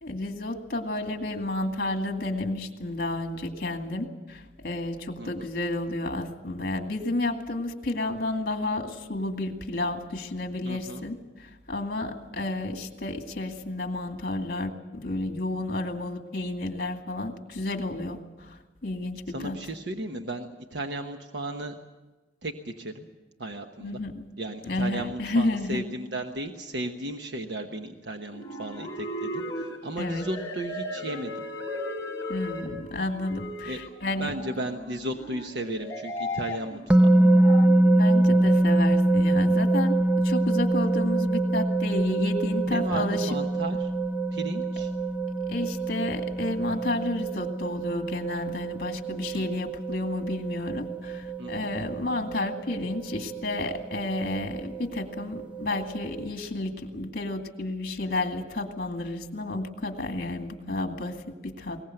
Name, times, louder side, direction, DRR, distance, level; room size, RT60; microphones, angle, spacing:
voice 1, 0.0-19.6 23.8-24.2 24.6-25.8 30.0-30.3 32.3-34.3 37.8-40.0 40.2-43.3 45.5-61.8, left 2 dB, 55° left, 5 dB, 2.2 m, -31 dB
voice 2, 10.6-11.0 19.3-21.7 22.4-23.1 23.4-24.0 24.4-31.3 33.7-33.8 34.2-37.1 42.7-43.9 44.3-44.9 49.3-49.4 51.4-51.7, right 1 dB, 70° right, 5 dB, 1.1 m, -35 dB
sound 1, 28.3-37.7, left 1 dB, 15° left, 5.6 m, -36 dB
sound 2, 36.9-56.3, right 2 dB, 5° right, 0.7 m, -25 dB
21.0 x 19.0 x 7.9 m, 1.2 s
head